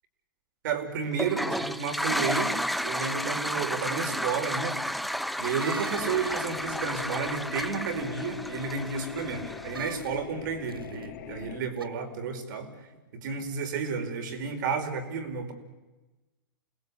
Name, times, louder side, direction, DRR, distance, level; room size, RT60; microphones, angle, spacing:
voice 1, 0.6-4.8 5.4-12.7 13.1-15.5, right 5 dB, 60° right, 7 dB, 4.7 m, -32 dB
Toilet flush, 1.1-10.0, equal, ahead, 0.8 m, -32 dB
sound 1, 5.6-6.8 9.7-10.1 10.7-11.1 11.8-11.9, right 5 dB, 90° right, 1.3 m, -40 dB
sound 2, 5.9-11.6, left 13 dB, 55° left, 2.6 m, -41 dB
28.5 x 20.0 x 8.4 m, 1.1 s
hypercardioid pair, 105°, 12 cm